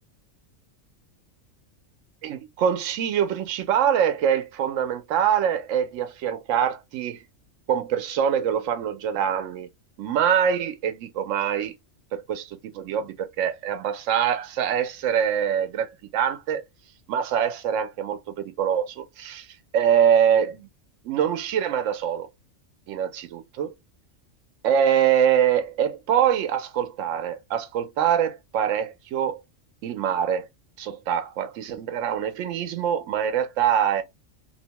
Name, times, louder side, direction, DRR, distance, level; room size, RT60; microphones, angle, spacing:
voice 1, 2.2-7.2 7.7-9.7 10.0-11.7 12.1-16.6 17.1-19.5 19.7-20.7 21.0-22.3 22.9-23.7 24.6-29.4 29.8-30.5 30.8-34.0, right 9 dB, 75° right, 0.9 m, -24 dB
2.7 x 2.1 x 2.8 m
omnidirectional pair, 1.3 m